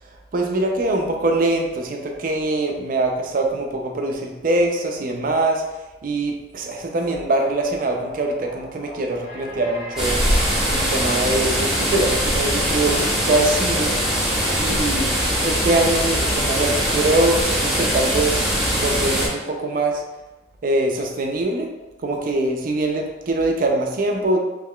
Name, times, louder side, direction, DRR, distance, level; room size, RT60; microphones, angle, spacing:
voice 1, 0.3-5.6 6.0-10.2 10.7-14.2 14.6-15.1 15.4-20.0 20.6-21.7 22.0-24.4, right 2 dB, 50° right, 2 dB, 0.4 m, -23 dB
sound 1, 7.0-15.4, equal, 70° left, 1.2 m, -39 dB
sound 2, 10.0-19.3, equal, ahead, 1.1 m, -21 dB
3.6 x 3.1 x 2.3 m, 1.1 s
head